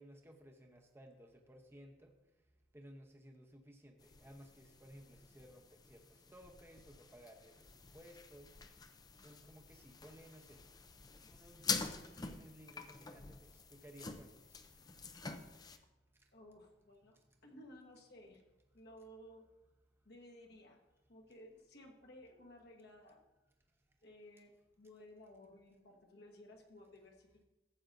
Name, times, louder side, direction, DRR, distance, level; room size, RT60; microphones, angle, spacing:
voice 1, 0.0-2.1 2.7-8.5 9.2-10.6 11.3-14.7 16.2-16.3 17.1-17.4, equal, 15° right, 2 dB, 0.8 m, -58 dB
sound 1, 4.0-15.8, left 5 dB, 20° left, 0.4 m, -46 dB
voice 2, 16.3-17.2 17.4-18.4 18.7-19.5 20.0-20.8 21.1-23.2 24.0-27.5, left 1 dB, 60° left, 1 dB, 1.3 m, -57 dB
14.5 x 7.9 x 2.6 m, 1.1 s
head